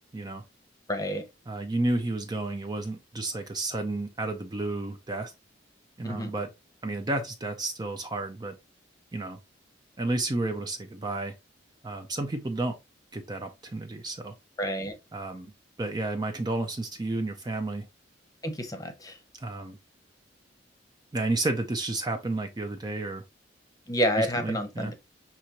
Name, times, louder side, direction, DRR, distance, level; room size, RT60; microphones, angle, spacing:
voice 1, 0.1-0.4 1.5-5.3 6.0-6.5 6.8-8.5 9.1-9.4 10.0-11.3 11.8-12.8 13.1-14.3 15.1-15.5 15.8-17.8 19.4-19.8 21.1-23.2 24.2-24.9, right 2 dB, 20° right, 0.4 m, -31 dB
voice 2, 0.9-1.2 6.0-6.3 14.6-14.9 18.4-19.2 23.9-24.9, equal, 20° left, 0.8 m, -29 dB
5.9 x 2.9 x 2.8 m
head